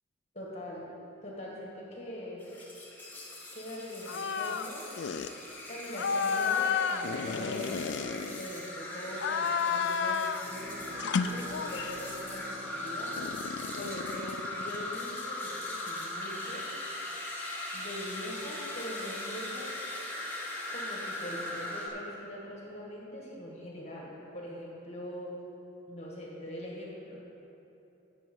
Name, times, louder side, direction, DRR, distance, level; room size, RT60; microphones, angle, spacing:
voice 1, 0.3-0.9 1.2-2.5 3.5-4.9 5.7-13.2 13.7-16.6 17.7-19.7 20.7-25.4 25.9-27.2, equal, 35° left, -4 dB, 1.6 m, -42 dB
sound 1, 2.4-21.9, left 1 dB, 10° left, 1.2 m, -39 dB
sound 2, 4.1-4.7 5.0-5.3 5.9-8.7 9.1-10.5 11.0-12.1 13.2-15.0, left 6 dB, 60° left, 0.3 m, -32 dB
Bowed string instrument, 10.4-14.9, left 1 dB, 25° right, 0.6 m, -50 dB
10.5 x 7.3 x 5.4 m, 3.0 s
head